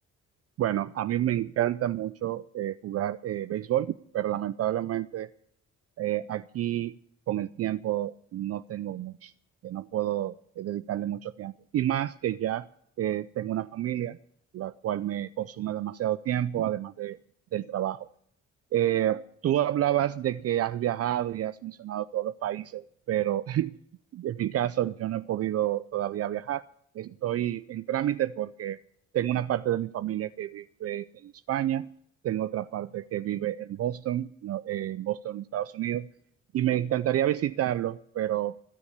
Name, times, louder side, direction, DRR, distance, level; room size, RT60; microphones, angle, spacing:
voice 1, 0.6-5.3 6.0-7.0 7.3-9.3 9.6-12.6 13.0-14.2 14.5-17.2 17.5-18.1 18.7-23.7 24.1-26.6 26.9-28.8 29.1-31.9 32.2-36.1 36.5-38.6, right 12 dB, 55° right, 13 dB, 0.4 m, -29 dB
14.0 x 7.0 x 9.7 m, 0.67 s
cardioid pair, 90°, 30 cm